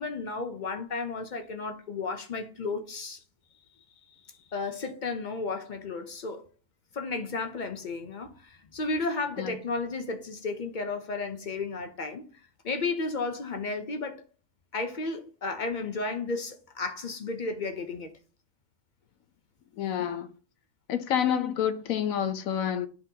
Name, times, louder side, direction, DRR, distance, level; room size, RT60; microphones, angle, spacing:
voice 1, 0.0-3.2 4.5-6.5 6.9-12.2 12.6-14.2 14.7-18.1 20.0-20.1, left 3 dB, 50° left, 0.5 m, -33 dB
voice 2, 19.8-20.3 20.9-22.9, left 9 dB, 70° left, 1.0 m, -28 dB
10.5 x 3.8 x 2.8 m
omnidirectional pair, 1.6 m